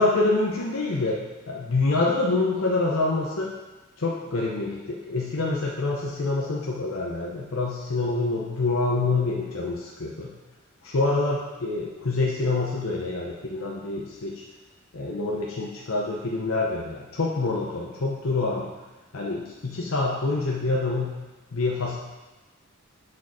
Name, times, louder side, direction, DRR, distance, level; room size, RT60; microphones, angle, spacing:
voice 1, 0.0-3.6 4.0-10.4 10.8-14.4 14.9-18.7 19.1-21.3 21.5-22.0, left 3 dB, 70° left, -3 dB, 0.8 m, -26 dB
6.4 x 4.5 x 4.8 m, 1.2 s
head